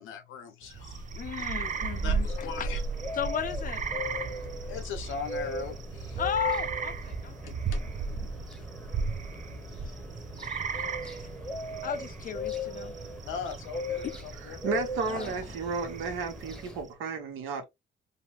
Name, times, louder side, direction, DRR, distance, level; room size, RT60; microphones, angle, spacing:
voice 1, 0.0-1.1 2.0-2.8 4.3-6.2 7.5-7.8 8.2-8.5 9.7-9.8 13.2-14.6, left 6 dB, 80° left, 0.8 m, -40 dB
sound 1, 0.6-16.9, right 5 dB, 40° right, 0.5 m, -36 dB
voice 2, 1.1-2.7 3.1-3.8 6.2-7.4 11.2-11.3 11.8-13.0 14.0-14.2 15.0-15.4, left 8 dB, 45° left, 0.5 m, -34 dB
sound 2, 1.6-16.8, left 2 dB, 5° left, 0.8 m, -39 dB
voice 3, 14.6-17.6, right 5 dB, 85° right, 1.1 m, -33 dB
2.7 x 2.1 x 3.1 m
cardioid pair, 90°, 20 cm